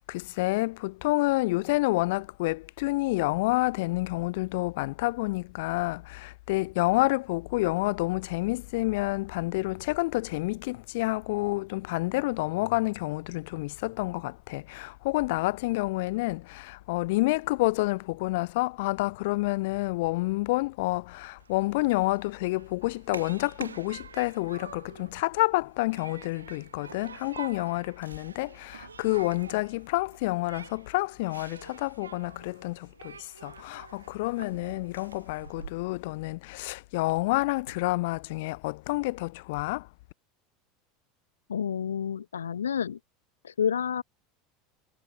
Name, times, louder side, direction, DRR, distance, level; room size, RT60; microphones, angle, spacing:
voice 1, 0.1-39.9, left 22 dB, 65° left, 2.2 m, -29 dB
Human group actions, 21.4-35.7, right 6 dB, 90° right, 6.0 m, -47 dB
voice 2, 41.5-43.0 43.4-44.0, left 8 dB, 85° left, 1.0 m, -29 dB
hypercardioid pair, 80°, 0 cm